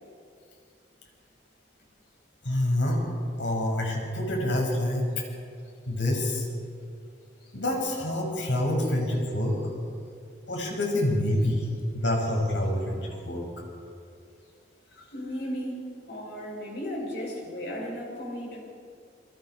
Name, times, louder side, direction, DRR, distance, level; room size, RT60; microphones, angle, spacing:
voice 1, 2.4-3.0 3.4-5.0 5.9-6.5 7.5-9.6 10.5-11.6 11.9-13.4, left 1 dB, 85° left, 0 dB, 6.6 m, -27 dB
voice 2, 15.1-18.6, equal, 60° left, -2 dB, 6.8 m, -35 dB
28.5 x 24.0 x 4.8 m, 2.4 s
head